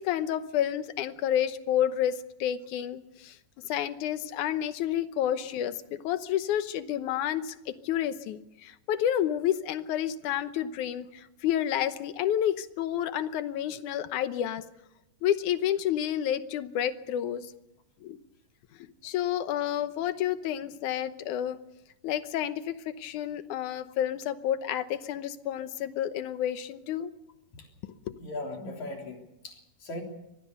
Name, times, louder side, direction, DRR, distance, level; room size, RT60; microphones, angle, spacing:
voice 1, 0.0-3.4 3.6-14.6 15.2-17.5 18.0-18.2 19.0-21.6 22.0-27.1 27.9-28.1, left 10 dB, 75° left, 12 dB, 2.3 m, -30 dB
voice 2, 28.2-30.0, left 1 dB, 60° left, 2 dB, 4.8 m, -39 dB
24.5 x 18.5 x 6.8 m, 0.88 s
omnidirectional pair, 3.8 m